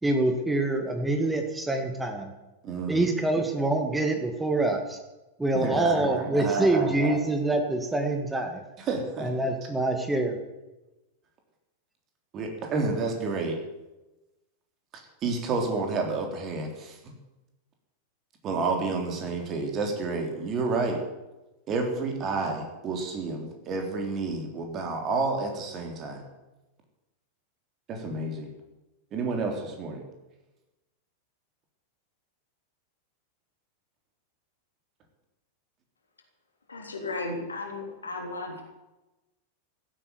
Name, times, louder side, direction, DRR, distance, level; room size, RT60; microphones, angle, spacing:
voice 1, 0.0-2.3 2.9-5.0 5.4-8.6 9.2-10.4, right 2 dB, 10° right, 4 dB, 2.1 m, -26 dB
voice 2, 2.6-3.1 5.5-7.2 8.8-9.3 12.3-13.6 14.9-17.1 18.4-21.0 21.7-26.2 27.9-28.5 29.1-30.0, right 3 dB, 30° right, 3 dB, 3.6 m, -30 dB
voice 3, 36.7-38.6, left 2 dB, 75° left, 2 dB, 3.4 m, -35 dB
15.5 x 9.0 x 9.6 m, 1.0 s
figure-of-eight pair, 90°, 0 cm